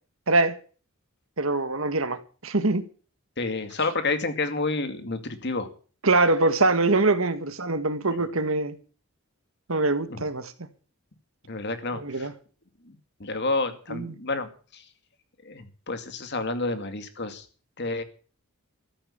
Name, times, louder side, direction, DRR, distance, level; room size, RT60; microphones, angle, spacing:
voice 1, 0.3-0.6 1.4-2.8 6.0-8.8 9.7-10.5 11.9-12.3 13.9-14.1, right 2 dB, 65° right, 1.7 m, -23 dB
voice 2, 3.4-5.7 10.1-10.2 11.4-12.3 12.8-14.8 15.4-17.5 17.8-18.0, left 3 dB, 50° left, 2.4 m, -30 dB
14.0 x 8.8 x 8.8 m
head